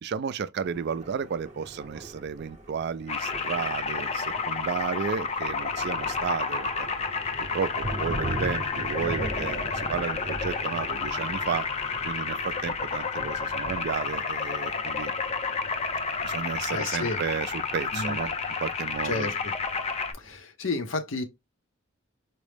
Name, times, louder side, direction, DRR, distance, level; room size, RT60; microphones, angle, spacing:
voice 1, 0.0-6.9 7.5-11.7 12.0-15.1 16.2-19.3, right 6 dB, 55° right, 0.3 m, -33 dB
Thunder, 0.6-20.4, right 1 dB, 35° right, 0.7 m, -41 dB
sound 1, 3.1-20.1, left 5 dB, 30° left, 0.4 m, -31 dB
voice 2, 16.7-17.2 17.9-18.2 19.0-19.5 20.1-21.2, left 3 dB, 70° left, 0.7 m, -31 dB
4.4 x 2.0 x 3.2 m
head